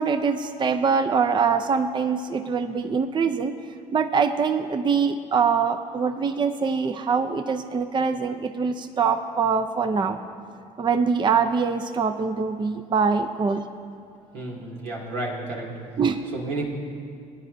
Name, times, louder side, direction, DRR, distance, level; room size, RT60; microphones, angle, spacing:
voice 1, 0.0-3.5 3.9-10.2 10.8-13.6 16.0-16.2, right 5 dB, 30° right, 8 dB, 0.5 m, -23 dB
voice 2, 14.3-15.7 16.3-16.7, right 2 dB, 90° right, -3 dB, 2.5 m, -31 dB
19.5 x 9.8 x 2.7 m, 2.4 s
supercardioid pair, 80°, 16 cm